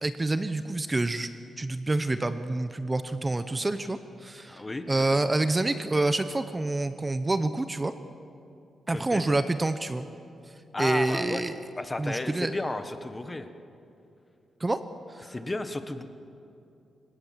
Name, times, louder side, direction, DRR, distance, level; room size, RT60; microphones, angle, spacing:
voice 1, 0.0-1.3 1.6-7.9 8.9-10.1 10.8-11.6 12.0-12.5 14.6-14.8 15.1-15.3, right 2 dB, 20° right, 11 dB, 0.8 m, -27 dB
voice 2, 4.5-5.3 8.9-9.2 10.7-11.4 11.8-13.5 15.2-16.0, left 2 dB, 20° left, 9 dB, 1.4 m, -33 dB
28.0 x 17.0 x 7.5 m, 2.7 s
cardioid pair, 100°, 0 cm